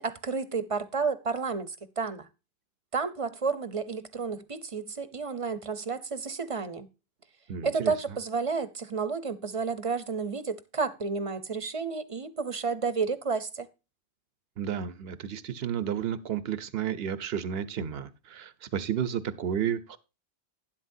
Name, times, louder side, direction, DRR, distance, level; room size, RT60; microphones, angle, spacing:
voice 1, 0.0-2.3 2.9-6.9 7.6-13.7, right 5 dB, 35° right, 0.9 m, -31 dB
voice 2, 7.5-7.9 14.6-20.0, right 8 dB, 70° right, 1.1 m, -32 dB
12.0 x 10.5 x 2.7 m
omnidirectional pair, 1.1 m